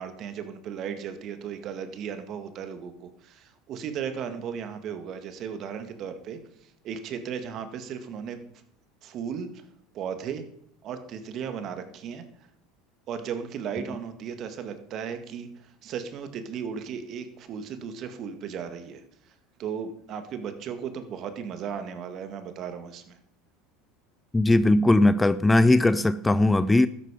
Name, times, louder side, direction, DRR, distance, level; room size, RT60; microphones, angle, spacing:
voice 1, 0.0-6.4 6.8-8.4 9.0-9.5 9.9-10.4 10.8-12.2 13.1-19.0 19.6-23.2, right 7 dB, 50° right, 9 dB, 2.0 m, -35 dB
voice 2, 24.3-26.9, left 2 dB, 10° left, 16 dB, 0.5 m, -19 dB
13.0 x 10.5 x 5.2 m, 0.70 s
hypercardioid pair, 80°, 0 cm